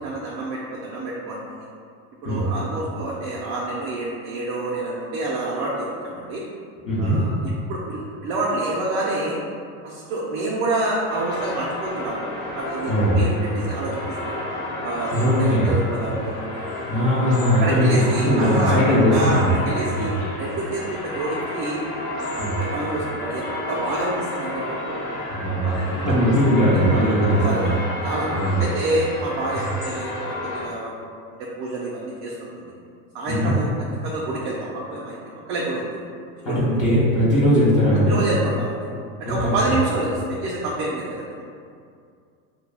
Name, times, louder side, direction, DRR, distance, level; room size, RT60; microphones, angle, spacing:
voice 1, 0.0-1.4 2.2-6.4 7.0-7.4 7.7-9.4 9.8-12.2 12.6-14.4 14.8-16.8 17.6-20.1 20.4-21.8 22.2-25.1 25.6-25.7 26.7-27.8 28.0-28.3 28.6-30.9 31.4-32.7 33.1-33.7 34.0-35.2 35.5-36.0 36.5-36.6 38.1-38.9 39.2-41.4, right 2 dB, 40° right, -5 dB, 0.4 m, -27 dB
voice 2, 6.9-7.2 12.9-13.3 15.1-15.7 16.9-17.9 18.2-19.5 20.0-20.1 22.4-22.6 25.3-27.7 28.3-28.6 33.3-33.5 36.4-38.2 39.3-39.5, equal, 35° left, -9 dB, 0.7 m, -19 dB
sound 1, 11.1-30.7, left 1 dB, 90° left, 0.8 m, -31 dB
2.2 x 2.1 x 3.3 m, 2.3 s
supercardioid pair, 125°, 41 cm